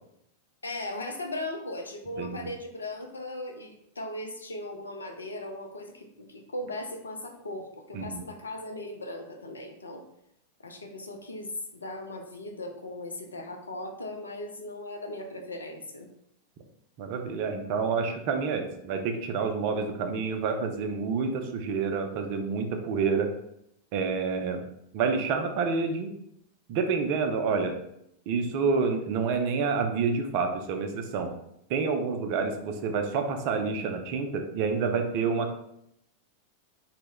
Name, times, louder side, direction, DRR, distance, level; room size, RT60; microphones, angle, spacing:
voice 1, 0.6-10.0 10.6-16.1, left 1 dB, 75° left, 4 dB, 0.4 m, -38 dB
voice 2, 2.2-2.5 7.9-8.2 17.0-23.3 23.9-24.6 24.9-26.1 26.7-27.8 28.3-31.3 31.7-35.5, right 5 dB, 45° right, 5 dB, 0.3 m, -28 dB
2.0 x 2.0 x 3.5 m, 0.76 s
figure-of-eight pair, 90°, 0 cm